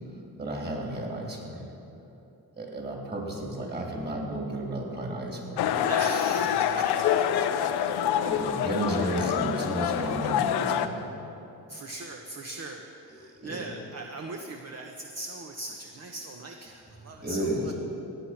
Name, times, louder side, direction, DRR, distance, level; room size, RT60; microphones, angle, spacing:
voice 1, 0.4-1.7 2.6-5.7 7.8-7.9 8.2-11.1 13.1-13.7 17.2-17.7, right 1 dB, 25° right, 0 dB, 3.3 m, -33 dB
sound 1, 5.6-10.9, left 9 dB, 90° left, 0.7 m, -26 dB
voice 2, 5.8-7.2 8.2-8.4 11.7-17.7, right 2 dB, 40° right, 3 dB, 1.1 m, -40 dB
17.5 x 8.8 x 6.0 m, 2.9 s
cardioid pair, 80°, 37 cm